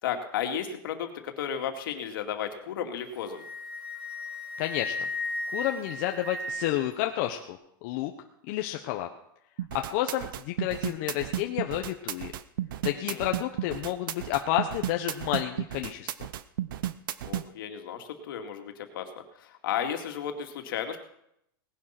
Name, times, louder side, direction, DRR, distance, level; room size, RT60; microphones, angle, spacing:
voice 1, 0.0-3.4 12.9-13.3 17.2-21.0, left 8 dB, 65° left, 4 dB, 2.5 m, -34 dB
Wind instrument woodwind instrument, 3.0-6.9, left 2 dB, 5° right, 6.1 m, -35 dB
voice 2, 4.6-4.9 5.5-8.1 8.5-9.1 9.7-12.3 12.8-16.1, left 13 dB, 40° left, 4 dB, 1.0 m, -30 dB
Drum Machine-Like Loop, 9.6-17.4, right 12 dB, 65° right, 0.9 m, -33 dB
18.5 x 11.0 x 5.9 m, 0.77 s
supercardioid pair, 160°, 12 cm